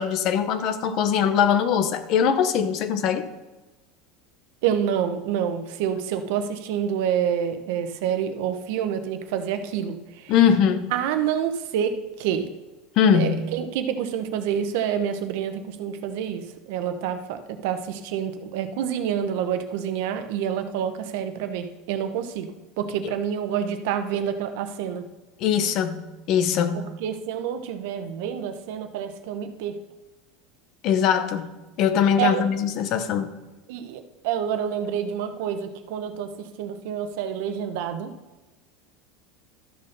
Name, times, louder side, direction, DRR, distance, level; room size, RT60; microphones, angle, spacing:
voice 1, 0.0-3.3 10.3-10.9 13.0-13.5 25.4-26.0 26.3-26.8 30.8-31.5 31.8-33.3, left 8 dB, 45° left, 11 dB, 0.8 m, -21 dB
voice 2, 4.6-10.3 10.9-12.5 13.1-22.5 22.8-25.1 26.7-29.8 32.2-32.5 33.7-38.1, right 8 dB, 70° right, 8 dB, 1.0 m, -28 dB
12.5 x 4.4 x 6.5 m, 1.1 s
supercardioid pair, 155°, 0 cm